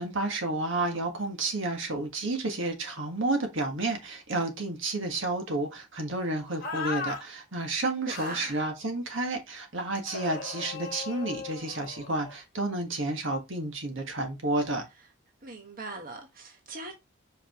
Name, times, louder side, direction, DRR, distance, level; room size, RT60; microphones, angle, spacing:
voice 1, 0.0-14.8, right 2 dB, 65° right, 1.6 m, -31 dB
sound 1, 6.6-7.2 8.1-8.6 10.1-12.4, left 4 dB, 45° left, 1.6 m, -37 dB
voice 2, 8.1-8.6 15.4-16.9, right 3 dB, 45° right, 1.4 m, -40 dB
5.8 x 5.4 x 3.0 m
head